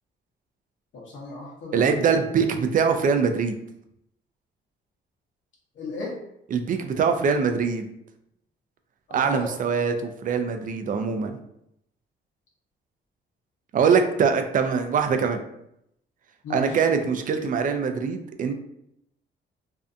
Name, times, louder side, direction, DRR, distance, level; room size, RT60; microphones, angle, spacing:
voice 1, 0.9-2.2 5.7-6.2 9.1-9.6 16.4-16.8, left 2 dB, 70° left, -4 dB, 0.8 m, -35 dB
voice 2, 1.7-3.6 6.5-7.8 9.1-11.3 13.7-15.4 16.5-18.5, right 6 dB, 45° right, 7 dB, 0.4 m, -23 dB
2.5 x 2.2 x 2.5 m, 0.78 s
cardioid pair, 90°, 20 cm